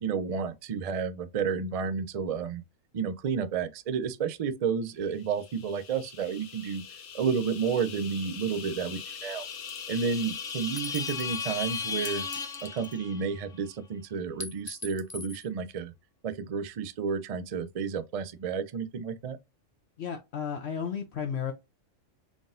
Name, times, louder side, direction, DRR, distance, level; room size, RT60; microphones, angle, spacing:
voice 1, 0.0-2.6 2.9-6.8 7.1-9.4 9.9-12.2 12.6-15.9 16.2-19.4, right 6 dB, 75° right, 0.3 m, -31 dB
sound 1, 5.4-13.4, left 6 dB, 85° left, 1.2 m, -38 dB
sound 2, 9.7-10.0 10.8-11.4 12.0-13.3 14.4-15.5, left 3 dB, 20° left, 0.6 m, -42 dB
voice 2, 20.0-21.5, left 7 dB, 65° left, 0.9 m, -33 dB
4.0 x 3.6 x 2.4 m
omnidirectional pair, 1.3 m